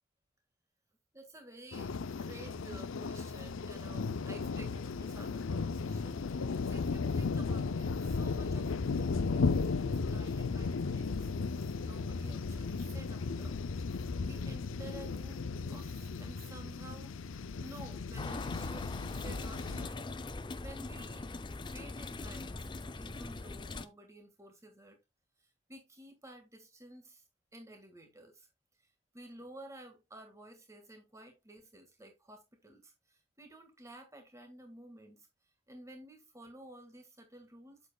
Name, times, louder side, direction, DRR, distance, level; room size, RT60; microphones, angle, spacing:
voice 1, 1.1-11.3 11.8-13.6 13.9-17.1 17.6-18.9 19.1-21.3 21.6-22.7 22.9-25.0 25.4-27.2 27.5-28.5 29.1-35.3 35.7-37.8, right 1 dB, 15° right, 1.8 m, -53 dB
sound 1, 1.7-19.9, left 4 dB, 80° left, 0.5 m, -35 dB
sound 2, 18.2-23.9, left 3 dB, 25° left, 0.4 m, -41 dB
8.2 x 7.4 x 2.3 m
head